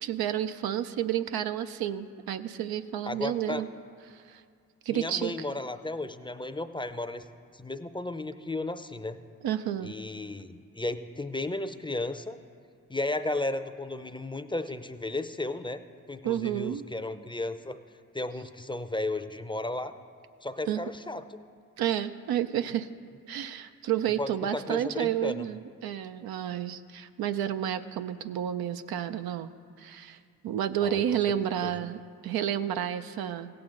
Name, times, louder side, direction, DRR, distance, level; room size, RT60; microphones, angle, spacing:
voice 1, 0.0-3.7 4.1-4.4 4.8-5.3 9.4-9.9 16.2-16.9 20.6-20.8 21.8-22.9 23.3-29.5 29.8-30.2 30.4-33.5, right 10 dB, 80° right, 10 dB, 0.5 m, -30 dB
voice 2, 3.1-3.6 4.9-7.3 7.5-9.2 9.8-12.4 12.9-15.8 16.1-17.8 18.1-19.9 20.4-21.4 24.2-25.5 30.8-31.0 31.6-31.7, left 2 dB, 15° left, 10 dB, 0.5 m, -34 dB
16.5 x 7.8 x 3.8 m, 2.2 s
supercardioid pair, 40°, 36 cm